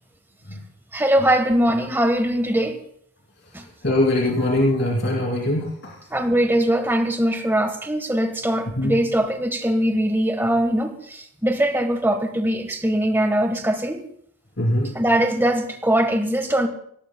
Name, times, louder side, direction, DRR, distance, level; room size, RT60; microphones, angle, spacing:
voice 1, 0.9-2.8 3.5-3.6 6.1-14.0 14.9-16.7, right 1 dB, 10° right, 1.4 m, -21 dB
voice 2, 3.8-5.9 8.8-9.0 14.6-14.9, left 1 dB, 60° left, 2.9 m, -21 dB
24.5 x 17.5 x 2.3 m
head